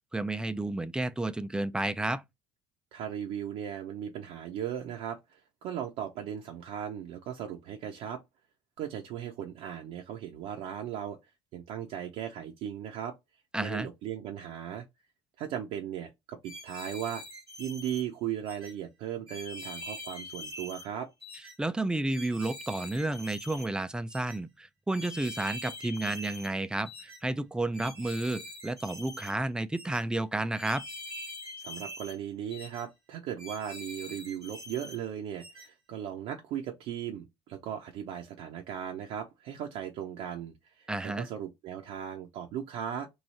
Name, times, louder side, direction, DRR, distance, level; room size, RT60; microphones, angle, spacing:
voice 1, 0.1-2.2 13.5-13.9 21.6-30.8 40.9-41.3, right 2 dB, 5° right, 0.4 m, -31 dB
voice 2, 2.9-8.2 8.8-11.2 11.5-13.1 13.6-14.8 15.4-17.2 17.6-21.1 31.6-43.1, right 9 dB, 50° right, 0.6 m, -37 dB
sound 1, 16.4-18.0 18.4-18.7 19.3-20.9 21.2-21.6 22.1-23.7 24.1-24.4 24.9-26.5 26.8-27.2 27.7-29.3 29.7-30.0 30.6-32.2 32.5-32.8 33.4-35.0 35.4-35.7, left 1 dB, 85° right, 1.0 m, -44 dB
3.2 x 2.6 x 4.0 m
figure-of-eight pair, 60°, 13 cm